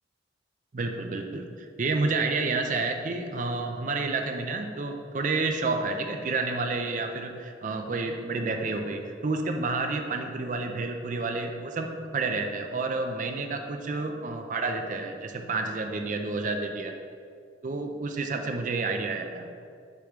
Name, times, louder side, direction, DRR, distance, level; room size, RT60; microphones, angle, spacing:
voice 1, 0.7-11.9 12.1-16.9 17.6-19.5, right 3 dB, 40° right, 5 dB, 0.4 m, -30 dB
6.7 x 3.0 x 5.0 m, 2.2 s
head